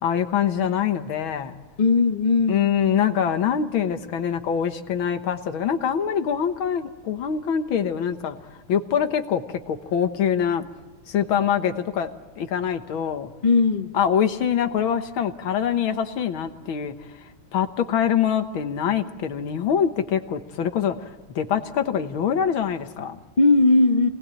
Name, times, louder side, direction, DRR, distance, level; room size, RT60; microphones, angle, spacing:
voice 1, 0.0-1.6 2.5-8.4 8.7-10.6 11.1-12.1 12.4-13.3 13.9-16.9 17.5-23.2, left 8 dB, 80° left, 8 dB, 2.0 m, -24 dB
voice 2, 1.8-2.7 13.4-13.9 23.4-24.1, left 3 dB, 30° left, 7 dB, 1.0 m, -18 dB
26.5 x 19.0 x 8.8 m, 1.2 s
omnidirectional pair, 2.2 m